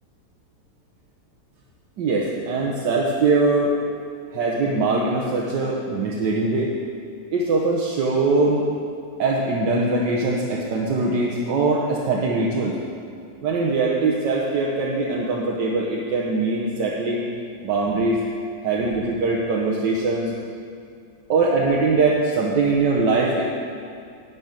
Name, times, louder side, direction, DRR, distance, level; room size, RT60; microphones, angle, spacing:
voice 1, 2.0-3.7 4.3-6.7 7.3-8.7 9.2-12.7 13.4-17.3 17.6-18.2 18.6-20.3 21.3-23.4, right 3 dB, 90° right, -3 dB, 1.6 m, -22 dB
12.0 x 5.3 x 8.4 m, 2.4 s
omnidirectional pair, 1.8 m